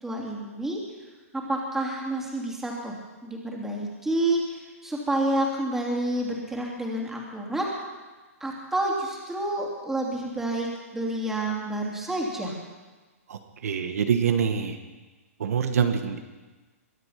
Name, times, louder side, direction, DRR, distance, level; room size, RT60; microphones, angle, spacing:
voice 1, 0.0-0.8 1.5-7.7 8.4-12.5, right 1 dB, 5° right, -2 dB, 2.8 m, -29 dB
voice 2, 13.3-14.8 15.4-16.2, right 7 dB, 75° right, 7 dB, 1.4 m, -25 dB
22.5 x 8.1 x 5.8 m, 1.3 s
hypercardioid pair, 140°, 8 cm